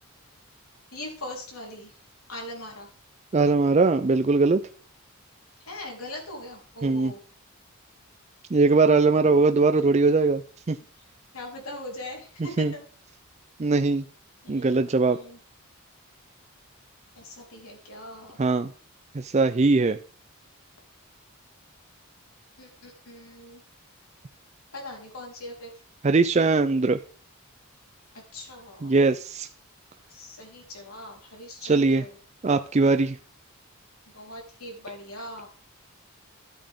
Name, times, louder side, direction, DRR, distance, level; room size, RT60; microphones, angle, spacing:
voice 1, 0.9-1.9 2.3-2.9 5.6-7.2 11.3-12.8 14.4-14.8 15.1-15.4 17.2-18.4 22.6-23.6 24.7-25.7 28.3-28.9 30.1-32.1 34.1-35.5, left 1 dB, 80° left, 0 dB, 4.1 m, -40 dB
voice 2, 3.3-4.6 6.8-7.1 8.5-10.4 10.7-10.8 12.6-12.7 13.6-14.0 14.5-15.2 18.4-18.7 19.1-20.0 26.0-27.0 28.8-29.5 31.6-32.0 32.4-33.2, right 3 dB, 30° right, 8 dB, 0.4 m, -21 dB
12.5 x 8.6 x 3.7 m, 0.42 s
head